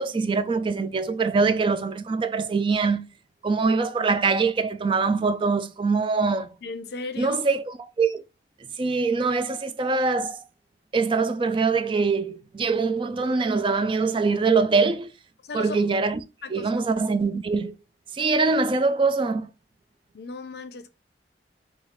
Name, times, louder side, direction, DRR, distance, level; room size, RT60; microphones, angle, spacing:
voice 1, 0.0-3.1 3.4-6.5 7.2-8.2 8.8-10.4 10.9-15.1 15.5-16.2 16.5-17.8 18.1-19.5, right 4 dB, 30° right, 0.3 m, -23 dB
voice 2, 6.6-7.4 15.4-15.8 16.4-16.7 20.1-20.9, left 3 dB, 60° left, 0.5 m, -35 dB
3.9 x 2.3 x 3.2 m
head